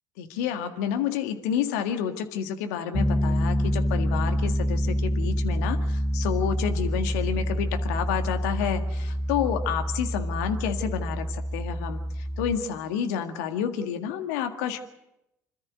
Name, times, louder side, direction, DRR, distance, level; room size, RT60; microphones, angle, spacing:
voice 1, 0.2-14.8, left 8 dB, 70° left, 6 dB, 1.8 m, -29 dB
Piano, 2.9-12.6, equal, 5° left, 1.1 m, -27 dB
26.0 x 13.5 x 9.3 m, 0.88 s
hypercardioid pair, 60°, 9 cm